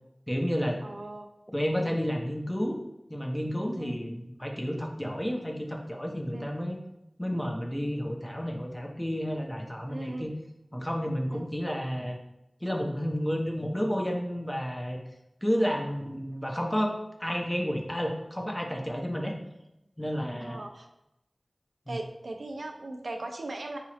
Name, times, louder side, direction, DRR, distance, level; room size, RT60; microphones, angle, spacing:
voice 1, 0.3-0.8 1.5-2.8 3.1-6.8 7.2-10.3 10.7-12.2 12.6-15.0 15.4-19.3 20.0-20.6 21.9-22.0, equal, 15° left, 2 dB, 0.6 m, -31 dB
voice 2, 0.8-1.3 3.8-4.0 6.3-6.5 9.9-10.3 11.3-11.4 20.4-20.9 21.9-23.8, right 2 dB, 85° right, 4 dB, 0.4 m, -38 dB
4.8 x 2.9 x 2.9 m, 0.88 s
wide cardioid pair, 65°, 0 cm